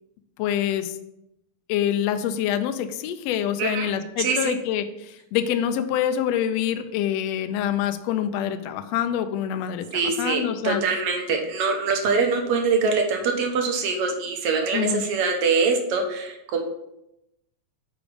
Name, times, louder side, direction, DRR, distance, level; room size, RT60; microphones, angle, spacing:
voice 1, 0.4-1.0 1.7-10.8 14.7-15.0, left 10 dB, 85° left, 9 dB, 1.5 m, -26 dB
voice 2, 3.6-3.9 4.2-4.6 9.9-16.6, right 4 dB, 65° right, 3 dB, 1.7 m, -24 dB
6.8 x 5.0 x 5.1 m, 0.85 s
omnidirectional pair, 3.5 m